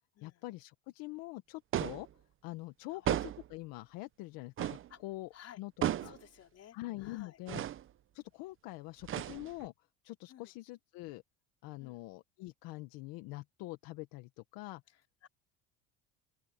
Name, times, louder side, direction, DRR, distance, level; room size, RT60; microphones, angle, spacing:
voice 1, 0.2-2.1 2.4-6.1 6.7-7.6 8.1-9.7 10.0-11.2 11.6-14.8, left 20 dB, 75° left, 1.5 m, -45 dB
sound 1, 1.7-2.1 3.0-3.5 4.6-4.9 5.8-6.2 7.5-7.8 9.0-9.7, right 11 dB, 35° right, 0.8 m, -34 dB
voice 2, 6.0-7.4 10.3-10.5 11.8-12.0 15.2-15.3, left 10 dB, 45° left, 3.8 m, -55 dB
open air
cardioid pair, 125°, 35 cm